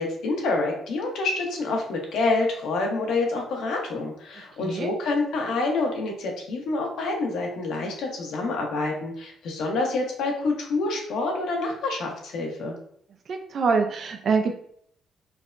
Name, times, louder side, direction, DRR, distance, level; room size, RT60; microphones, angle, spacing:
voice 1, 0.0-12.7, left 3 dB, 75° left, 0 dB, 0.9 m, -27 dB
voice 2, 4.6-4.9 13.3-14.5, right 5 dB, 55° right, 4 dB, 0.4 m, -24 dB
4.6 x 2.1 x 2.5 m, 0.65 s
cardioid pair, 90°, 0 cm